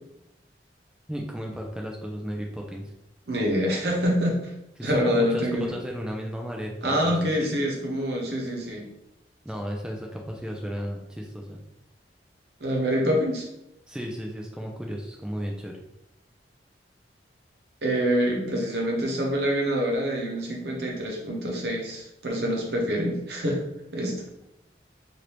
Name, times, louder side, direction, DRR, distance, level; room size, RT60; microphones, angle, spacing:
voice 1, 1.1-2.8 4.8-7.1 7.4-7.5 9.4-11.6 13.9-15.8, equal, 5° right, 0 dB, 0.3 m, -34 dB
voice 2, 3.3-4.5 4.8-5.7 6.8-8.8 12.6-13.4 17.8-23.6 23.9-24.1, equal, 65° right, -1 dB, 0.9 m, -26 dB
3.2 x 2.5 x 2.9 m, 0.83 s
head